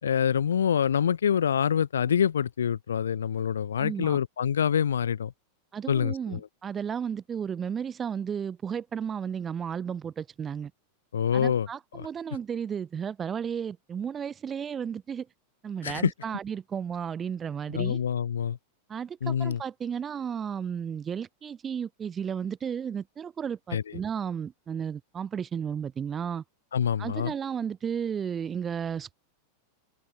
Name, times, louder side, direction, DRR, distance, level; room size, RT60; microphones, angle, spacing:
voice 1, 0.0-5.3 5.9-6.5 11.1-11.7 11.9-12.1 15.8-16.1 17.7-18.6 19.2-19.6 23.7-23.8 26.7-27.3, left 8 dB, 65° left, 4.4 m, -26 dB
voice 2, 3.8-4.2 5.7-10.7 11.3-15.3 15.6-18.0 18.9-26.4 27.0-29.1, right 7 dB, 20° right, 2.7 m, -33 dB
open air
figure-of-eight pair, 90°, 0 cm